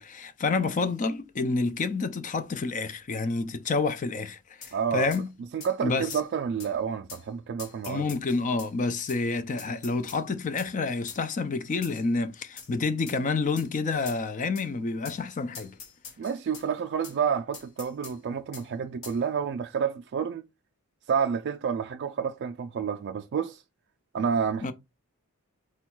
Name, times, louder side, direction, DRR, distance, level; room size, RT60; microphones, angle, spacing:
voice 1, 0.0-5.3 5.8-6.2 7.9-15.7 24.6-24.7, left 3 dB, 35° left, 0.4 m, -29 dB
sound 1, 4.6-4.8 5.1-5.2 5.6-5.7 6.1-6.3 6.6-6.7 7.1-7.2 7.6-8.7 9.1-9.2 9.6-10.2 10.6-10.7 11.1-11.2 11.8-12.1 12.6-12.7 13.1-13.2 13.6-13.7 14.1-14.2 14.6-14.7 15.0-15.2 15.5-16.7 17.0-17.2 17.5-18.2 18.5-18.7 19.0-19.2, left 5 dB, 65° left, 1.3 m, -44 dB
voice 2, 4.7-5.1 5.5-8.1 16.2-20.4 21.1-23.6 24.1-24.7, right 7 dB, 50° right, 0.3 m, -29 dB
4.4 x 2.3 x 4.4 m
head